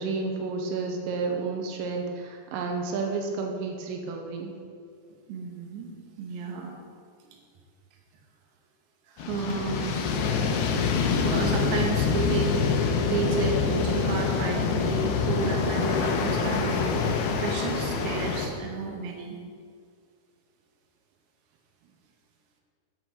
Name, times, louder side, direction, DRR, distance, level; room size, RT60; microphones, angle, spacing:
voice 1, 0.0-4.5, right 4 dB, 85° right, 2 dB, 3.2 m, -31 dB
voice 2, 5.3-5.9 6.2-6.7 9.1-10.5 11.2-17.1 17.4-19.4, right 4 dB, 65° right, 0 dB, 2.9 m, -32 dB
sound 1, 9.2-18.5, left 5 dB, 80° left, 2.5 m, -26 dB
12.0 x 6.3 x 5.2 m, 2.2 s
omnidirectional pair, 5.0 m